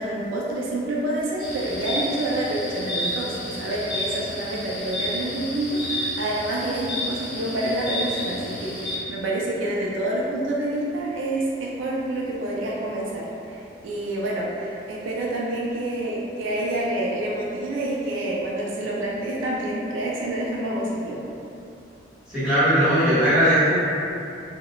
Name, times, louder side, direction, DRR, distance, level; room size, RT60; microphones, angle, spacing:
voice 1, 0.0-21.2, right 1 dB, 80° right, -4 dB, 0.4 m, -27 dB
sound 1, 1.4-9.0, left 1 dB, 25° left, 0.7 m, -31 dB
voice 2, 22.3-23.7, equal, 5° right, -16 dB, 1.1 m, -19 dB
2.3 x 2.0 x 2.8 m, 2.7 s
head